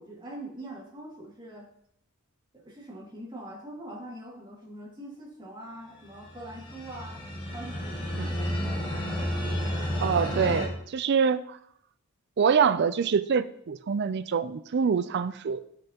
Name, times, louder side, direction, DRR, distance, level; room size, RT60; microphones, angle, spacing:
voice 1, 0.0-1.7 2.5-7.2 7.5-8.5 9.1-9.3, right 1 dB, 20° right, -4 dB, 2.2 m, -43 dB
sound 1, 6.1-10.7, equal, 20° left, 1.7 m, -31 dB
voice 2, 10.0-11.6 12.4-15.6, right 6 dB, 50° right, 15 dB, 0.4 m, -25 dB
9.9 x 6.6 x 2.9 m, 0.68 s
head